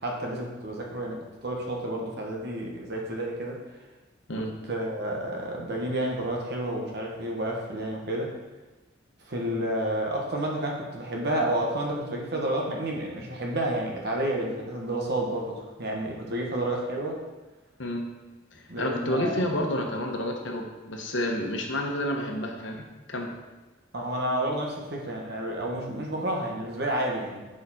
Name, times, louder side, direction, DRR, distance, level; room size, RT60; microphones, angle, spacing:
voice 1, 0.0-3.6 4.4-8.3 9.2-17.2 18.7-19.5 23.9-27.5, right 1 dB, 60° right, 0 dB, 1.3 m, -30 dB
voice 2, 18.5-23.3, left 1 dB, 75° left, 2 dB, 1.0 m, -30 dB
6.7 x 5.1 x 4.2 m, 1.2 s
head